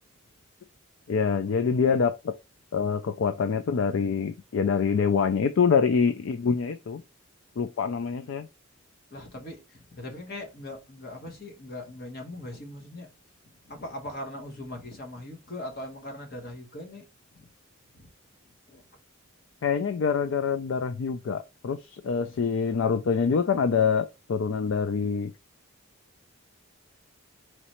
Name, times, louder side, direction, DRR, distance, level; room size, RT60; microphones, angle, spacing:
voice 1, 1.1-2.3 2.7-7.0 7.6-8.5 19.6-25.3, left 6 dB, 60° left, 0.3 m, -25 dB
voice 2, 9.1-13.1 13.6-17.0 17.3-17.5 17.9-18.1 18.7-18.8, left 1 dB, 45° left, 1.3 m, -40 dB
3.9 x 3.2 x 2.9 m
head